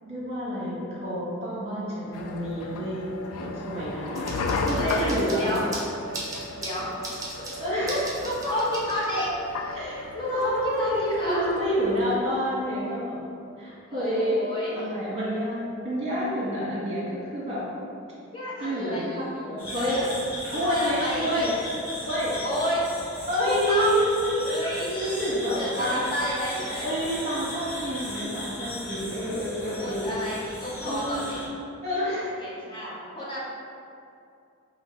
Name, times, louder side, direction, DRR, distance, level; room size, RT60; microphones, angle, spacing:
voice 1, 0.0-3.1 3.4-5.6 7.6-8.1 9.7-13.2 13.6-14.4 14.7-17.6 18.6-20.0 20.5-21.6 22.0-22.4 23.3-26.0 26.8-30.2 30.8-31.2 31.8-32.4, equal, 30° right, -7 dB, 1.3 m, -28 dB
sound 1, 2.1-12.2, left 3 dB, 85° left, 0.4 m, -34 dB
sound 2, 4.2-9.4, right 2 dB, 15° right, 0.8 m, -39 dB
voice 2, 4.7-5.6 6.6-6.9 8.2-9.8 10.1-11.4 13.9-14.8 18.3-19.4 19.7-20.1 20.6-21.5 22.4-22.8 23.4-24.0 24.4-26.9 29.8-31.4 32.4-33.4, equal, 25° left, -7 dB, 0.9 m, -31 dB
sound 3, 19.6-31.5, left 1 dB, 70° left, 1.2 m, -37 dB
5.0 x 2.6 x 3.1 m, 2.5 s
head